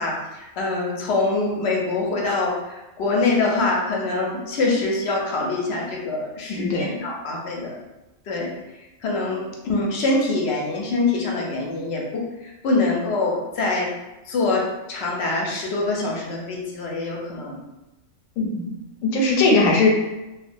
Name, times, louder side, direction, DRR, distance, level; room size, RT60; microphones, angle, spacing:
voice 1, 0.0-7.8 8.3-8.5 9.0-13.9 14.3-14.6 14.9-17.6, left 3 dB, 65° left, -2 dB, 0.7 m, -24 dB
voice 2, 6.5-6.9 18.4-18.7 19.0-19.9, left 3 dB, 90° left, -1 dB, 1.0 m, -19 dB
2.3 x 2.1 x 2.5 m, 1.0 s
omnidirectional pair, 1.4 m